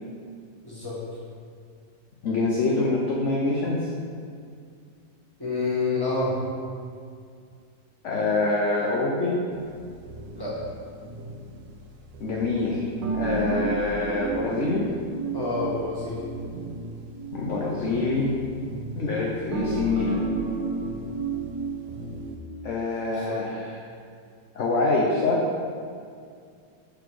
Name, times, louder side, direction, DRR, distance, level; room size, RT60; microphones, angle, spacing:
voice 1, 0.6-1.0 5.4-6.4 10.3-10.6 15.3-16.2 23.1-23.4, left 3 dB, 10° left, -7 dB, 1.5 m, -28 dB
voice 2, 2.2-3.9 8.0-9.4 12.2-12.9 13.1-14.9 17.3-18.3 18.9-20.2 22.6-23.8 24.5-25.4, left 3 dB, 55° left, -3 dB, 0.8 m, -25 dB
sound 1, 9.5-22.4, right 3 dB, 75° right, 1.4 m, -33 dB
7.9 x 4.1 x 4.8 m, 2.3 s
omnidirectional pair, 2.1 m